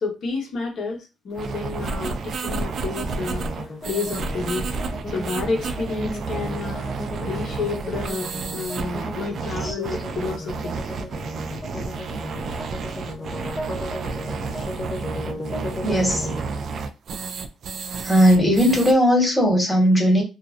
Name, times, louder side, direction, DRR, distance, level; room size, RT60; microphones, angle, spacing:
voice 1, 0.0-4.7 5.1-6.9 7.2-10.8, left 4 dB, 65° left, 0.9 m, -30 dB
sound 1, 1.3-18.9, right 4 dB, 60° right, 0.3 m, -31 dB
sound 2, 2.9-16.4, left 2 dB, 40° left, 0.5 m, -36 dB
voice 2, 15.8-16.3 18.0-20.2, equal, 10° left, 1.2 m, -18 dB
2.5 x 2.0 x 2.5 m
supercardioid pair, 75°, 0 cm